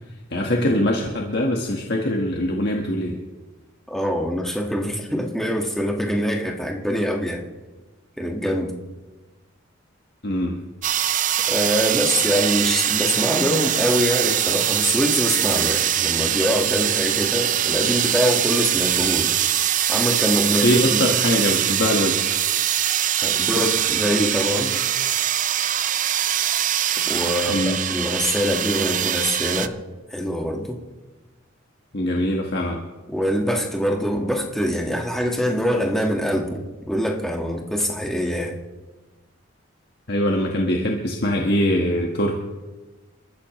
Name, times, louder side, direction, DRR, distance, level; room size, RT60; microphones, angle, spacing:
voice 1, 0.3-3.2 10.2-10.5 20.6-22.4 27.5-27.8 31.9-32.8 40.1-42.4, left 1 dB, 55° left, 0 dB, 1.5 m, -22 dB
voice 2, 3.9-7.4 8.2-8.7 11.5-19.3 19.9-20.8 21.1-21.2 23.2-24.8 27.1-29.8 30.1-30.8 33.1-38.6, equal, ahead, 0 dB, 1.6 m, -24 dB
sound 1, 10.8-29.7, right 11 dB, 40° right, 0.5 m, -22 dB
28.5 x 14.0 x 3.2 m, 1.2 s
head